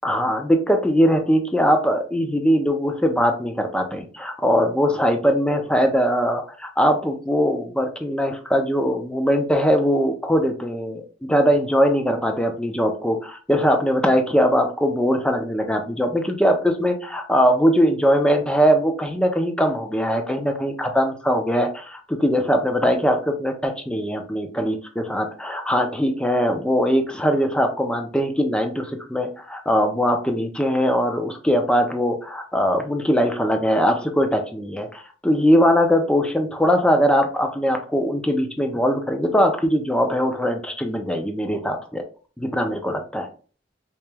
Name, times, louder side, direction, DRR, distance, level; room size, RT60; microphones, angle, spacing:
voice 1, 0.0-42.0 42.4-43.3, equal, 5° left, 5 dB, 0.5 m, -21 dB
4.9 x 3.0 x 2.2 m, 0.39 s
head